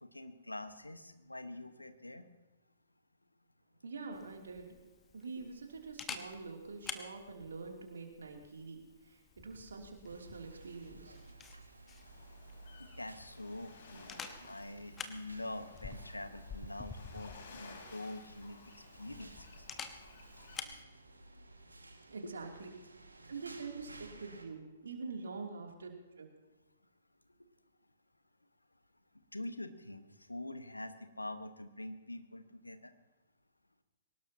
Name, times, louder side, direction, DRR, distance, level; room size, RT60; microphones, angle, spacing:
voice 1, 0.0-2.3 12.8-19.7 22.2-22.3 29.3-32.9, left 1 dB, 85° left, 9 dB, 1.3 m, -45 dB
voice 2, 3.8-4.8 5.1-11.2 22.1-22.7 23.3-26.3, right 4 dB, 65° right, 1 dB, 2.9 m, -45 dB
Camera, 4.1-20.8, left 6 dB, 15° left, 1.1 m, -50 dB
sound 1, 10.0-24.4, right 2 dB, 80° right, 2.0 m, -56 dB
sound 2, 12.0-20.6, left 3 dB, 55° left, 4.0 m, -56 dB
23.0 x 19.0 x 2.9 m, 1.1 s
figure-of-eight pair, 120°, 0 cm